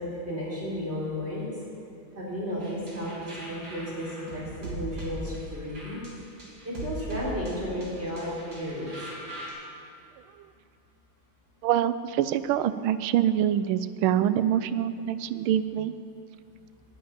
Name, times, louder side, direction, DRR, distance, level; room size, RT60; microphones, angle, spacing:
voice 1, 0.0-1.5 2.1-6.0 6.6-8.9 15.0-15.1, equal, 30° right, -6 dB, 3.8 m, -33 dB
sound 1, 2.6-9.5, right 2 dB, 50° right, 3.3 m, -40 dB
voice 2, 11.6-15.9, right 11 dB, 90° right, 14 dB, 1.4 m, -25 dB
10.5 x 8.6 x 8.9 m, 2.6 s
omnidirectional pair, 2.2 m